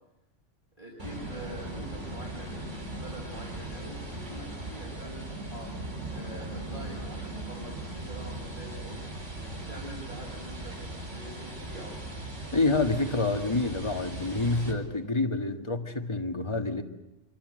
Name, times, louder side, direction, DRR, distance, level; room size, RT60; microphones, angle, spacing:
voice 1, 0.8-9.0 9.5-12.0, equal, 45° right, 6.2 m, -45 dB
sound 1, 1.0-14.7, right 2 dB, 85° right, 5.0 m, -39 dB
voice 2, 12.5-16.8, left 3 dB, 25° left, 2.0 m, -27 dB
27.0 x 24.5 x 7.9 m
omnidirectional pair, 1.2 m